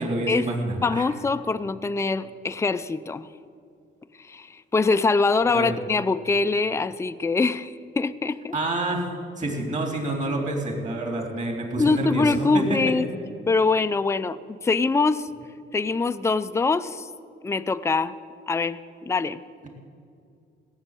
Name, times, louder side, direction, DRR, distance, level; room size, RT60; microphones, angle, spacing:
voice 1, 0.0-1.0 5.5-5.8 8.5-9.0 9.4-12.8, right 2 dB, 40° right, 2 dB, 3.4 m, -27 dB
voice 2, 0.8-3.3 4.2-8.6 11.8-13.1 13.5-14.4 14.6-15.3 15.7-17.1 17.4-18.1 18.5-19.4, left 4 dB, 15° left, 11 dB, 0.5 m, -23 dB
17.0 x 7.2 x 9.1 m, 2.4 s
cardioid pair, 90°, 20 cm